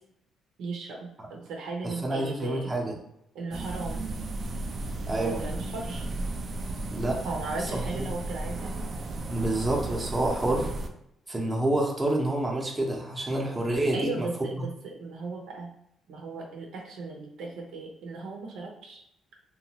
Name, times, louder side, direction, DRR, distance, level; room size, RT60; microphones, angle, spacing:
voice 1, 0.6-2.7 3.3-4.1 5.2-6.1 7.2-9.0 13.9-15.7 16.1-19.0, right 3 dB, 85° right, 0 dB, 0.6 m, -37 dB
voice 2, 1.8-2.9 5.1-5.5 6.9-7.2 9.3-10.7 11.3-14.3 14.5-14.6, right 1 dB, 20° right, -2 dB, 0.7 m, -28 dB
sound 1, 3.5-10.9, right 2 dB, 50° right, 0.4 m, -34 dB
2.8 x 2.3 x 2.8 m, 0.77 s
cardioid pair, 90°, 0 cm